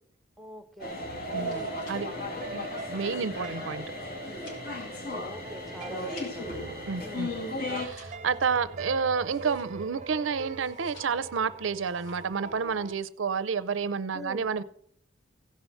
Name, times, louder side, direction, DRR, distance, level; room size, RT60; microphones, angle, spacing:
voice 1, 0.4-1.0 1.3-1.8 5.0-7.3 14.1-14.5, right 1 dB, ahead, 7 dB, 0.7 m, -44 dB
sound 1, 0.8-7.9, left 1 dB, 50° left, 1.9 m, -35 dB
sound 2, 0.8-12.9, right 4 dB, 40° right, 0.6 m, -43 dB
sound 3, 1.3-6.7 7.0-10.0 10.5-11.4 11.7-12.4 12.7-13.1, left 2 dB, 75° left, 4.2 m, -55 dB
voice 2, 1.3-2.1 2.5-3.8 6.9-7.3 7.8-14.6, right 5 dB, 85° right, 15 dB, 0.6 m, -30 dB
16.0 x 5.6 x 5.8 m, 0.66 s
head